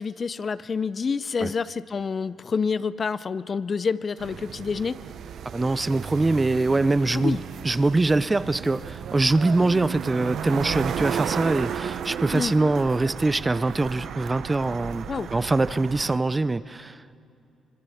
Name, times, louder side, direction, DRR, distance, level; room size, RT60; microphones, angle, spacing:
voice 1, 0.0-5.0 7.1-7.4 12.3-12.5 15.1-15.3, left 5 dB, 40° left, 16 dB, 0.6 m, -28 dB
sound 1, 4.2-16.2, right 8 dB, 65° right, 0.8 m, -34 dB
voice 2, 5.5-17.2, right 2 dB, 20° right, 15 dB, 0.6 m, -23 dB
26.0 x 21.5 x 7.1 m, 2.7 s
cardioid pair, 90°, 0 cm